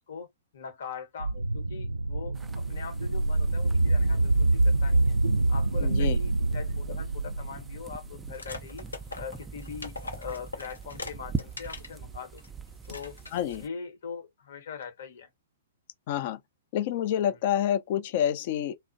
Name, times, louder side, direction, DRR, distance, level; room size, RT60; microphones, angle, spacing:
voice 1, 0.1-5.2 5.5-8.9 9.2-12.4 12.9-13.2 13.5-15.3 17.3-17.4, left 6 dB, 65° left, 0.9 m, -42 dB
sound 1, 1.2-8.3, right 2 dB, 85° right, 0.3 m, -26 dB
sound 2, 2.3-13.7, right 4 dB, 10° right, 0.4 m, -42 dB
voice 2, 5.8-6.2 13.3-13.6 16.1-16.4 16.7-18.8, left 10 dB, 50° left, 0.5 m, -28 dB
sound 3, 8.3-11.9 12.4-12.5 12.8-13.6, left 3 dB, 90° left, 0.7 m, -41 dB
2.4 x 2.0 x 2.5 m
hypercardioid pair, 120°, 0 cm